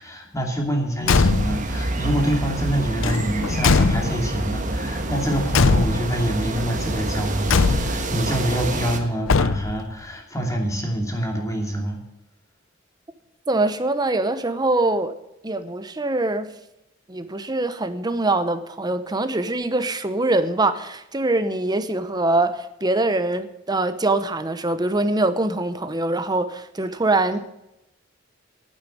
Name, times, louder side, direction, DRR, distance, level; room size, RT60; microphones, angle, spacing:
voice 1, 0.0-12.0, right 1 dB, 15° left, 2.7 m, -26 dB
Car / Truck / Slam, 1.0-1.7 3.0-4.4 5.5-6.3 7.5-8.2 9.3-9.9, left 4 dB, 85° left, 0.6 m, -21 dB
sound 1, 1.1-9.0, right 2 dB, 40° right, 1.5 m, -27 dB
voice 2, 13.5-15.1 15.4-16.5 17.1-27.4, right 2 dB, 20° right, 0.9 m, -23 dB
9.6 x 8.8 x 9.3 m
head